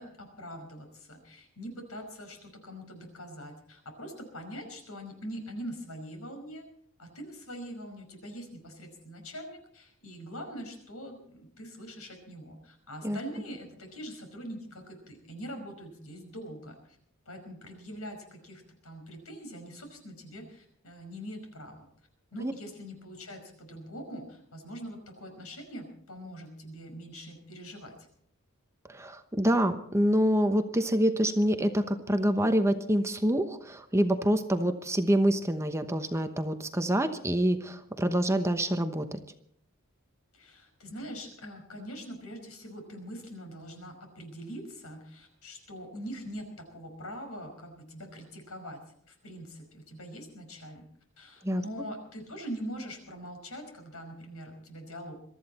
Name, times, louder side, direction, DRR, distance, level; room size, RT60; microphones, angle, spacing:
voice 1, 0.0-6.6 7.0-17.0 17.3-21.9 22.3-27.9 40.3-48.8 49.1-50.8 51.2-55.2, equal, 80° left, 4 dB, 5.3 m, -43 dB
voice 2, 28.9-39.2 51.4-51.6, equal, 15° right, 8 dB, 1.0 m, -26 dB
22.5 x 14.0 x 4.2 m, 0.66 s
head